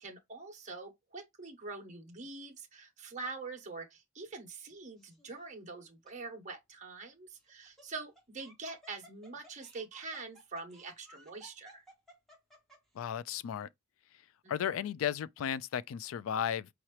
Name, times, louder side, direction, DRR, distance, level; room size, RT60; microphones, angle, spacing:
voice 1, 0.0-11.8 14.4-14.9, right 3 dB, 35° right, 1.1 m, -45 dB
Laughter, 5.0-5.4 6.1-6.2 7.4-13.0, right 1 dB, ahead, 1.3 m, -59 dB
voice 2, 13.0-13.7 14.5-16.7, left 9 dB, 85° left, 0.3 m, -34 dB
4.8 x 2.8 x 3.0 m
head